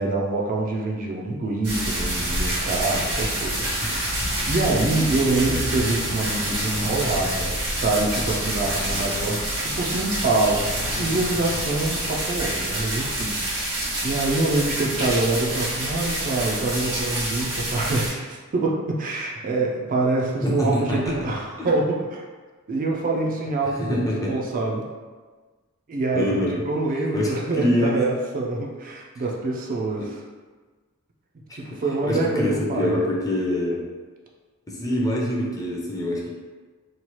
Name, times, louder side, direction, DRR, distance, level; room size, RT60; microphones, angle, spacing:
voice 1, 0.0-22.2 22.7-24.9 25.9-30.2 31.5-33.0, right 2 dB, 40° right, -1 dB, 0.3 m, -26 dB
sound 1, 1.6-18.1, right 1 dB, 90° right, 1.2 m, -27 dB
sound 2, 3.3-12.1, left 1 dB, 65° left, 0.5 m, -36 dB
voice 2, 3.8-4.2 5.4-5.8 20.4-21.1 21.6-21.7 23.8-24.3 26.1-26.6 27.1-28.0 31.5-31.6 32.0-33.8 34.7-36.4, left 1 dB, 15° left, -4 dB, 0.5 m, -25 dB
Drum, 21.1-22.3, right 1 dB, 70° right, 0.9 m, -45 dB
2.9 x 2.3 x 3.0 m, 1.4 s
head